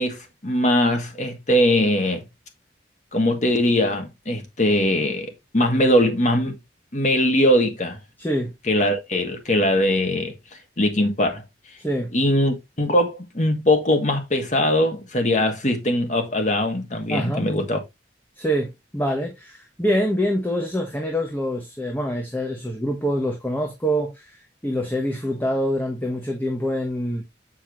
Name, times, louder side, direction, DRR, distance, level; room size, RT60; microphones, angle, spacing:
voice 1, 0.0-2.2 3.1-6.5 6.9-8.0 8.7-10.3 10.8-11.4 12.1-17.8, left 1 dB, 40° left, 2.0 m, -21 dB
voice 2, 8.2-8.5 11.8-12.1 17.1-17.5 18.4-27.3, equal, 10° left, 1.3 m, -25 dB
7.7 x 5.5 x 3.2 m
head